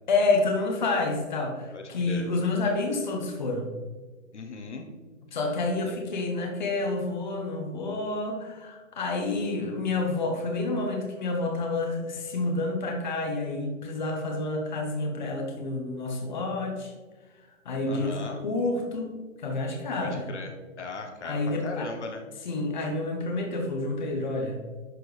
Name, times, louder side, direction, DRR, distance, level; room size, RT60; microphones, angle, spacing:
voice 1, 0.1-3.7 5.3-16.9 17.6-18.2 18.4-19.1 19.4-20.3 21.2-21.9 22.4-24.6, left 3 dB, 35° left, 2 dB, 1.2 m, -29 dB
voice 2, 1.7-2.3 4.3-4.9 5.8-6.0 17.9-18.4 20.0-22.2, left 3 dB, 60° left, 3 dB, 1.1 m, -38 dB
11.0 x 4.5 x 3.3 m, 1.3 s
hypercardioid pair, 170°, 39 cm